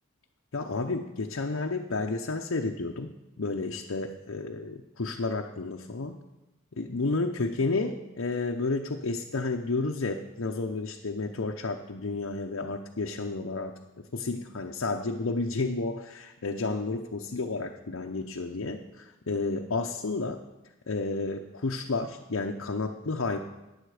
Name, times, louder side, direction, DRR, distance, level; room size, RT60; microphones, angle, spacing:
voice 1, 0.5-6.2 6.8-13.8 14.1-20.4 20.9-23.4, left 3 dB, 65° left, 1 dB, 0.7 m, -31 dB
14.5 x 9.9 x 4.9 m, 1.0 s
head